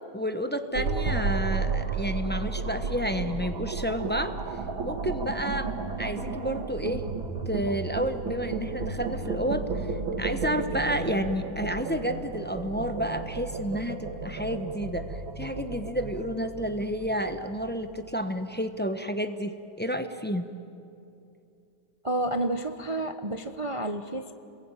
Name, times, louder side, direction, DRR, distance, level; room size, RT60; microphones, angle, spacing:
voice 1, 0.1-4.4 4.8-5.7 6.0-7.1 7.5-9.7 10.2-19.5 19.8-20.4, equal, 10° left, 8 dB, 0.5 m, -30 dB
sound 1, 0.7-18.0, right 4 dB, 85° right, 2.6 m, -33 dB
voice 2, 22.0-24.3, right 1 dB, 40° right, 7 dB, 0.4 m, -30 dB
30.0 x 22.0 x 9.1 m, 2.6 s
omnidirectional pair, 2.1 m